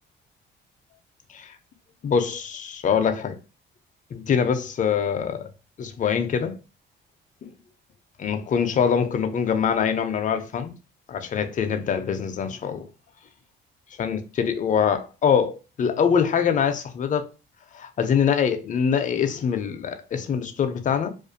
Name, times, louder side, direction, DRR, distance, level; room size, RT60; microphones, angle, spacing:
voice 1, 2.0-3.4 4.1-5.5 5.8-6.6 7.4-7.5 8.2-10.7 11.1-12.9 14.0-17.3 17.7-21.1, left 7 dB, 40° left, 0.4 m, -24 dB
2.4 x 2.2 x 2.5 m
cardioid pair, 90°, 20 cm